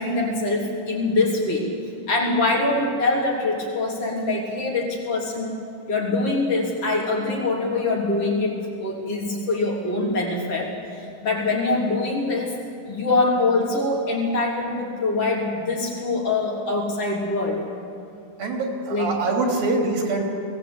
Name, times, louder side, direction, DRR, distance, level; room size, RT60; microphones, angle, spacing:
voice 1, 0.0-1.7 2.1-5.6 5.9-17.6 18.9-19.2, left 2 dB, 40° left, -1 dB, 4.2 m, -24 dB
voice 2, 18.4-20.2, right 3 dB, 80° right, 1 dB, 4.9 m, -24 dB
21.5 x 17.5 x 8.6 m, 2.5 s
omnidirectional pair, 4.0 m